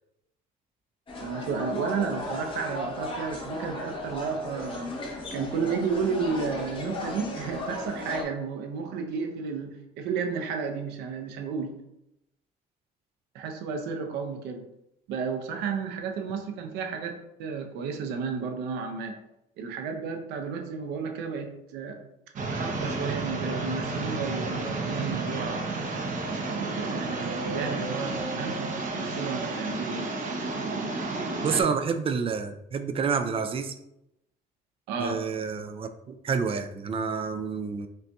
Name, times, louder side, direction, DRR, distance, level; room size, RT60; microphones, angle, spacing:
sound 1, 1.1-8.2, left 2 dB, 30° left, 0.9 m, -36 dB
voice 1, 1.2-5.0 5.3-11.7 13.3-14.7 15.1-19.2 19.6-22.0 22.5-25.7 26.5-30.1 30.8-31.2 31.5-31.9 34.9-35.2, right 5 dB, 90° right, 4 dB, 0.6 m, -32 dB
sound 2, 22.4-31.6, right 3 dB, 50° right, 0.8 m, -31 dB
voice 2, 31.4-33.7 35.0-37.9, right 5 dB, 35° right, 9 dB, 0.3 m, -29 dB
5.4 x 2.6 x 2.3 m, 0.84 s
cardioid pair, 110°, 17 cm